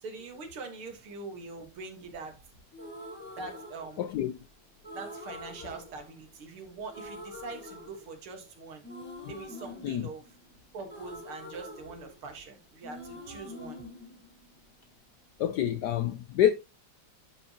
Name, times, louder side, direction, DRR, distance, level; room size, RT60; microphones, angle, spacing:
voice 1, 0.0-2.4 3.4-4.1 4.9-8.8 9.3-10.2 10.7-13.8, right 4 dB, 85° right, 2.5 m, -43 dB
sound 1, 2.7-4.4 4.8-6.6 6.9-8.5 8.8-12.5 12.8-14.9, left 1 dB, 5° left, 1.5 m, -45 dB
voice 2, 4.0-4.4 9.8-10.1 15.4-16.5, left 11 dB, 80° left, 0.9 m, -27 dB
11.0 x 4.8 x 2.9 m
omnidirectional pair, 2.3 m